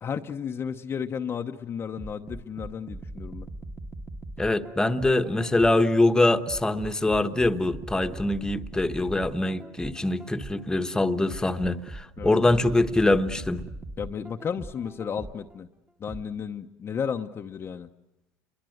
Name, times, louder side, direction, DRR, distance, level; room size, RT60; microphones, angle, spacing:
voice 1, 0.0-3.5 12.2-12.4 14.0-15.7 16.0-17.9, left 7 dB, 30° left, 0.9 m, -33 dB
sound 1, 2.0-5.9 6.5-10.7 11.3-15.5 16.1-16.2, right 2 dB, 15° right, 1.4 m, -40 dB
voice 2, 4.4-13.6, left 2 dB, 10° left, 1.2 m, -24 dB
29.5 x 23.0 x 7.9 m
cardioid pair, 125°, 8 cm